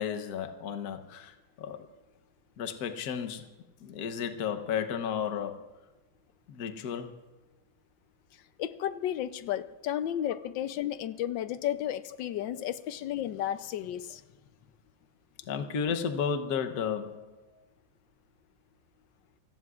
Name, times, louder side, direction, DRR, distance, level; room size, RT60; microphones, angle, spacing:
voice 1, 0.0-1.3 1.6-1.8 2.6-3.4 3.8-5.6 6.5-7.1 15.5-17.2, left 7 dB, 55° left, 8 dB, 1.3 m, -33 dB
voice 2, 8.6-14.2, left 11 dB, 75° left, 13 dB, 1.3 m, -33 dB
28.0 x 17.0 x 2.5 m, 1.2 s
omnidirectional pair, 2.2 m